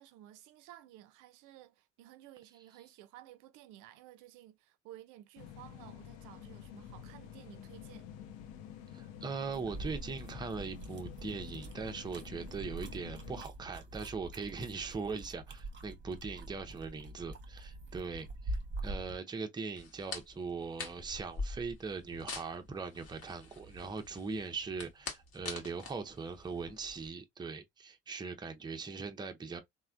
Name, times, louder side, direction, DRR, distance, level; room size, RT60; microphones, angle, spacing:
voice 1, 0.0-8.1, right 14 dB, 60° right, 0.6 m, -55 dB
sound 1, 5.4-13.4, left 9 dB, 65° left, 0.7 m, -49 dB
voice 2, 8.9-29.6, right 4 dB, 10° right, 0.6 m, -40 dB
sound 2, 9.5-19.2, right 1 dB, 35° right, 0.9 m, -44 dB
sound 3, 19.8-27.1, left 4 dB, 45° left, 1.1 m, -45 dB
3.2 x 2.2 x 2.4 m
hypercardioid pair, 65°, 35 cm